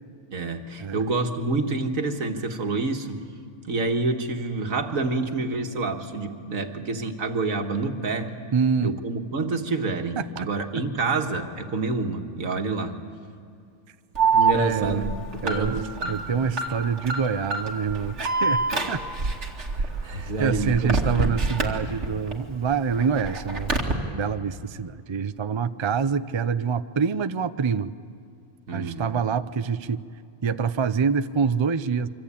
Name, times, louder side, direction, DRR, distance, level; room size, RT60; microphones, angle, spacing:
voice 1, 0.3-3.2 3.7-8.3 8.8-13.0 14.3-16.3 20.0-21.0 25.8-25.9 28.7-29.2, right 3 dB, 90° right, 5 dB, 2.0 m, -28 dB
voice 2, 8.5-9.0 10.2-10.3 14.5-15.1 15.4-15.8 16.1-19.0 20.4-23.8 24.1-27.9 28.7-30.0 30.4-32.1, right 6 dB, 35° right, 12 dB, 0.4 m, -26 dB
Alarm, 14.2-22.3 22.7-23.9, right 4 dB, 60° right, 2.5 m, -26 dB
25.0 x 25.0 x 8.6 m, 2.4 s
omnidirectional pair, 1.4 m